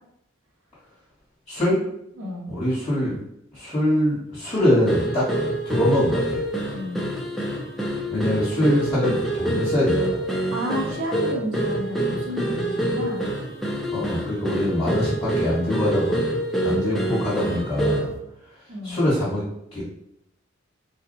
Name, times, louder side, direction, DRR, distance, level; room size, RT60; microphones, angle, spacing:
voice 1, 1.5-1.8 2.5-3.2 3.5-5.3 5.6-6.4 8.1-10.2 13.9-16.2 16.6-18.1 18.8-19.5 19.7-19.8, left 1 dB, 25° left, -10 dB, 1.6 m, -23 dB
voice 2, 2.2-2.5 6.7-7.1 10.5-13.3 14.6-15.0 18.7-19.0, left 1 dB, 80° right, -4 dB, 1.5 m, -31 dB
sound 1, 4.9-18.2, right 1 dB, ahead, 0.6 m, -26 dB
4.1 x 2.5 x 4.0 m, 0.78 s
head